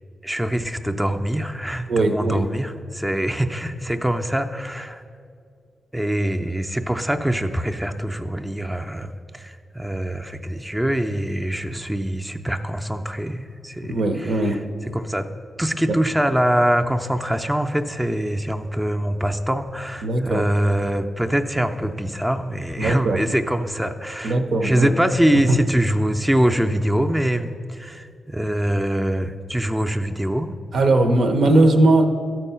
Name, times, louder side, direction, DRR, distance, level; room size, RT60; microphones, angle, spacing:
voice 1, 0.2-5.0 5.9-14.6 14.9-15.3 15.6-30.5, right 1 dB, 5° right, 5 dB, 0.4 m, -24 dB
voice 2, 1.9-2.5 13.8-14.6 15.9-16.0 20.0-20.5 22.8-23.2 24.2-24.9 25.5-25.6 30.7-32.1, right 2 dB, 75° right, 5 dB, 0.7 m, -19 dB
13.0 x 4.5 x 5.6 m, 2.2 s
cardioid pair, 70°, 0 cm